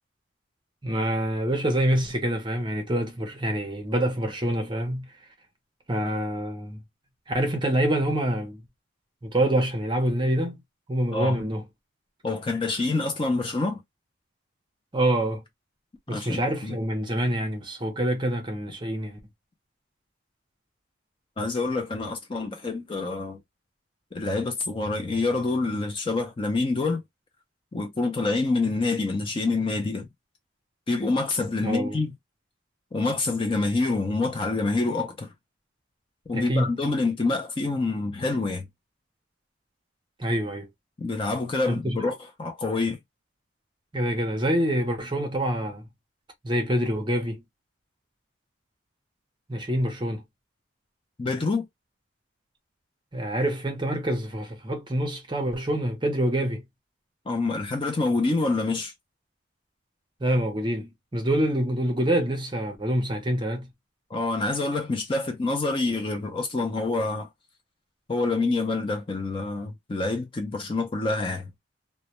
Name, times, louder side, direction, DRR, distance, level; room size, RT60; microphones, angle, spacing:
voice 1, 0.8-5.1 5.9-6.8 7.3-8.6 9.2-10.6 10.9-11.6 14.9-15.4 16.1-19.2 31.6-32.0 36.3-36.7 40.2-40.7 41.7-42.1 43.9-45.9 46.4-47.4 49.5-50.2 53.1-56.6 60.2-63.7, right 1 dB, 25° right, 0.6 m, -26 dB
voice 2, 11.1-11.5 12.2-13.8 16.1-16.8 21.4-23.4 24.1-27.0 27.7-30.1 30.9-32.1 32.9-35.3 36.3-38.7 41.0-43.0 51.2-51.6 57.3-58.9 64.1-67.3 68.1-71.5, left 3 dB, 25° left, 0.4 m, -27 dB
2.1 x 2.1 x 2.8 m
head